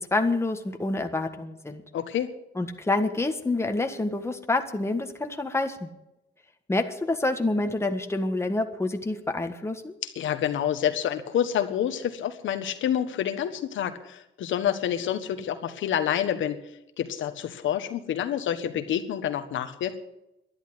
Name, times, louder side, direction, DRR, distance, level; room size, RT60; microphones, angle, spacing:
voice 1, 0.0-1.8 2.5-5.9 6.7-9.9, left 2 dB, 15° left, 5 dB, 1.7 m, -27 dB
voice 2, 1.9-2.3 10.0-16.6 17.0-20.0, left 10 dB, 75° left, 8 dB, 1.4 m, -28 dB
11.5 x 11.0 x 9.8 m, 0.88 s
cardioid pair, 90°, 20 cm